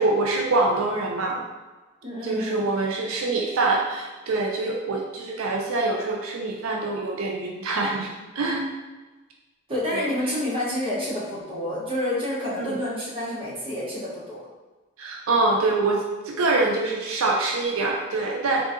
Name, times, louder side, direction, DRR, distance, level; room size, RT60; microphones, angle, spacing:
voice 1, 0.0-1.4 2.2-8.1 8.4-8.7 9.9-10.1 12.6-12.8 15.0-18.6, right 3 dB, 85° right, 0 dB, 0.4 m, -25 dB
voice 2, 2.0-2.7 9.7-14.4, left 1 dB, 25° right, -8 dB, 0.9 m, -29 dB
3.7 x 2.6 x 2.4 m, 1.2 s
head